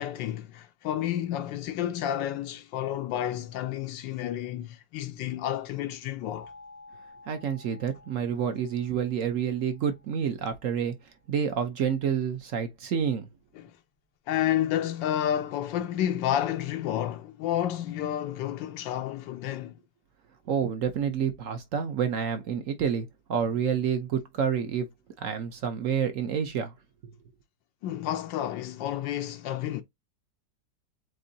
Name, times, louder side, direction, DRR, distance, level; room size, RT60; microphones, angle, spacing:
voice 1, 0.0-6.5 13.6-13.8 14.3-19.8 27.8-29.8, left 11 dB, 85° left, 1.3 m, -30 dB
sound 1, 6.3-11.0, left 3 dB, 15° left, 0.5 m, -53 dB
voice 2, 7.3-10.9 11.3-13.3 20.5-24.9 25.2-26.7 27.0-27.1, right 7 dB, 60° right, 0.9 m, -28 dB
7.4 x 2.7 x 2.6 m
omnidirectional pair, 2.0 m